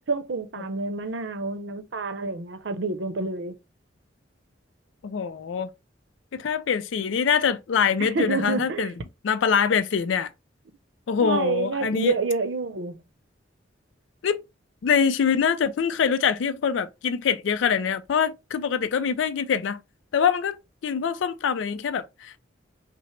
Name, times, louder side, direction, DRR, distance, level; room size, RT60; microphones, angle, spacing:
voice 1, 0.1-3.6 8.0-8.9 11.2-13.0, right 3 dB, 70° right, 0.6 m, -28 dB
voice 2, 5.0-5.7 6.3-8.9 9.2-10.3 11.1-12.1 14.2-14.4 14.8-19.8 20.1-22.4, left 7 dB, 80° left, 0.4 m, -24 dB
5.6 x 2.0 x 3.1 m
head